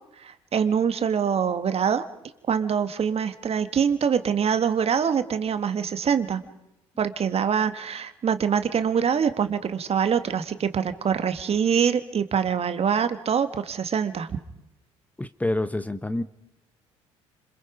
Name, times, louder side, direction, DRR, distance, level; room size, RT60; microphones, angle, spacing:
voice 1, 0.2-2.0 2.5-6.4 7.0-14.3, right 7 dB, 40° right, 9 dB, 2.0 m, -24 dB
voice 2, 15.2-16.2, left 1 dB, 10° left, 13 dB, 1.1 m, -27 dB
30.0 x 27.5 x 5.3 m, 0.88 s
hypercardioid pair, 55°, 16 cm